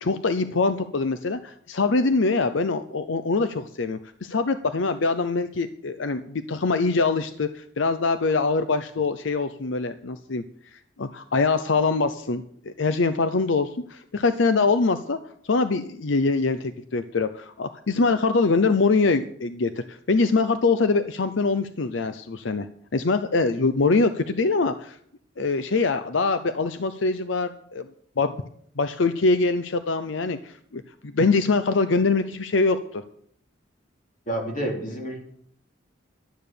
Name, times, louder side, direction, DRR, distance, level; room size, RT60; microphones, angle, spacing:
voice 1, 0.0-10.4 10.7-15.2 15.4-22.7 22.9-25.0 25.4-27.9 28.2-28.3 28.8-33.0, left 3 dB, 80° left, 11 dB, 0.7 m, -23 dB
voice 2, 34.3-35.2, right 1 dB, 45° left, 1 dB, 3.3 m, -29 dB
12.5 x 9.0 x 6.7 m, 0.66 s
head